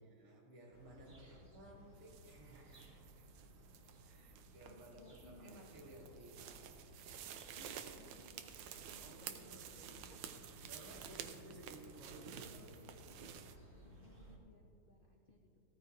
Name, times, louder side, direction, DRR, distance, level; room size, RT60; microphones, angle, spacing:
voice 1, 0.0-3.3 4.0-7.0 9.0-9.7 10.6-13.1, right 1 dB, 50° right, -3 dB, 2.3 m, -57 dB
sound 1, 0.7-14.4, right 1 dB, 25° right, 1.9 m, -60 dB
voice 2, 1.2-1.5 3.3-3.4 4.6-5.6 7.6-8.6 8.9-10.6 12.1-12.4 12.7-13.4 13.8-15.6, left 2 dB, 50° left, -1 dB, 0.6 m, -63 dB
sound 2, 2.0-13.6, right 9 dB, 80° right, 1.6 m, -52 dB
16.0 x 13.5 x 2.9 m, 2.8 s
omnidirectional pair, 2.4 m